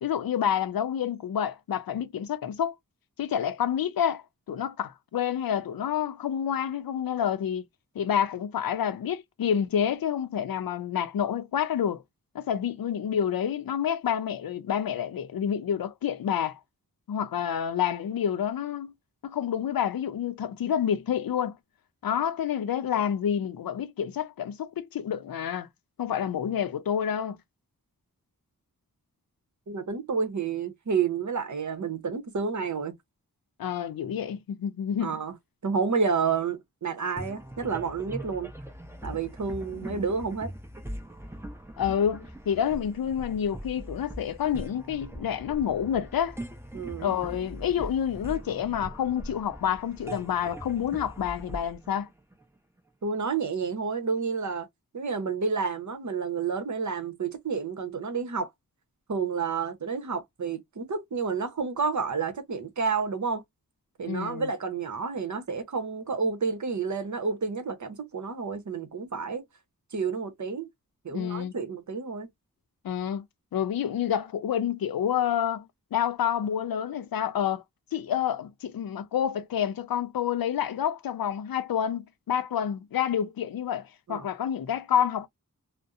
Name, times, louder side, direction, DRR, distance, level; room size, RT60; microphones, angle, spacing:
voice 1, 0.0-2.7 3.2-7.6 8.0-12.0 12.3-16.6 17.1-18.9 19.2-21.6 22.0-25.7 26.0-27.4 33.6-35.2 39.9-40.0 41.8-46.4 47.0-52.1 64.1-64.5 71.1-71.5 72.8-73.2 73.5-77.6 77.9-85.3, left 9 dB, 75° left, 0.5 m, -28 dB
voice 2, 29.7-33.0 35.0-35.3 35.6-38.5 39.0-40.5 46.7-47.1 53.0-54.7 54.9-58.5 59.1-63.4 64.0-69.4 69.9-70.7 71.0-72.3 84.1-84.3, right 5 dB, 55° right, 0.8 m, -30 dB
sound 1, 37.2-52.8, right 1 dB, 5° right, 0.7 m, -41 dB
2.6 x 2.0 x 2.4 m
wide cardioid pair, 60°, 35 cm